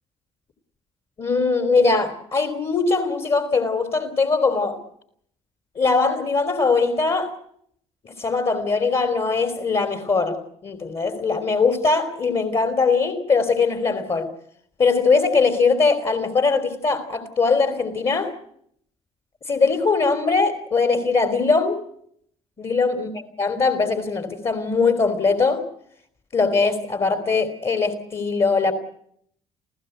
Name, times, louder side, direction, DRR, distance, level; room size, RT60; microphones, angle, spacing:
voice 1, 1.2-4.8 5.7-7.3 8.0-14.3 14.8-18.3 19.5-21.8 22.6-23.1 23.4-25.6 26.3-28.7, left 4 dB, 40° left, 7 dB, 3.1 m, -21 dB
28.0 x 15.5 x 7.9 m, 0.68 s
hypercardioid pair, 60°, 15 cm